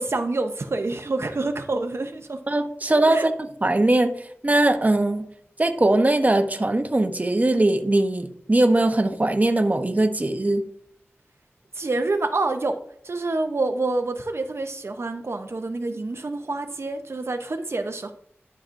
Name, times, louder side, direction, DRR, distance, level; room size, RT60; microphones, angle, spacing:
voice 1, 0.0-2.4 3.1-3.3 11.7-12.8 13.0-18.1, right 2 dB, 60° right, 6 dB, 0.7 m, -27 dB
voice 2, 2.5-3.3 3.6-4.1 4.4-5.3 5.6-10.6, right 2 dB, 35° right, 7 dB, 0.8 m, -20 dB
11.5 x 5.9 x 2.5 m, 0.65 s
wide cardioid pair, 50°, 5 cm